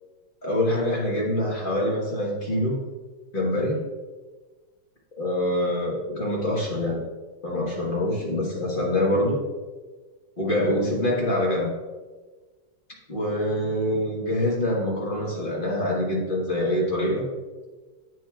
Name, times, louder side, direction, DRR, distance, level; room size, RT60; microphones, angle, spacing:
voice 1, 0.4-2.8 3.3-3.8 5.2-7.0 7.4-9.4 10.4-11.7 13.1-17.3, left 1 dB, 35° left, -3 dB, 0.9 m, -25 dB
8.7 x 6.3 x 2.3 m, 1.3 s
omnidirectional pair, 2.4 m